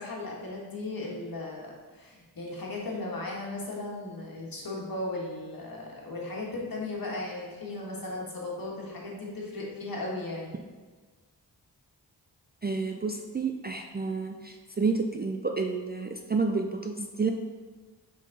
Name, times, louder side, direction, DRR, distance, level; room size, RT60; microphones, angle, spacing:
voice 1, 0.0-10.5, left 2 dB, 55° left, -3 dB, 1.6 m, -36 dB
voice 2, 12.6-17.3, right 4 dB, 25° right, 3 dB, 0.3 m, -30 dB
6.3 x 3.8 x 3.9 m, 1.4 s
cardioid pair, 60°, 42 cm